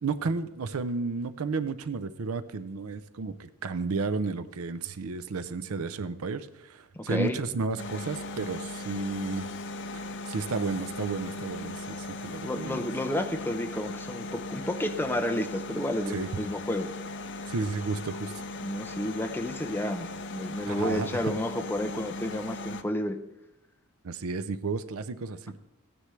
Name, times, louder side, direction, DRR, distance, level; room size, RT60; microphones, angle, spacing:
voice 1, 0.0-9.5 9.9-12.8 16.1-16.3 17.5-18.3 20.7-21.3 24.0-25.6, right 4 dB, 75° right, 13 dB, 0.5 m, -32 dB
voice 2, 6.9-7.4 12.4-16.9 18.6-23.2, left 1 dB, 10° left, 5 dB, 0.6 m, -31 dB
sound 1, 7.8-22.8, left 2 dB, 55° left, 0.6 m, -38 dB
15.0 x 9.9 x 3.2 m, 0.89 s
head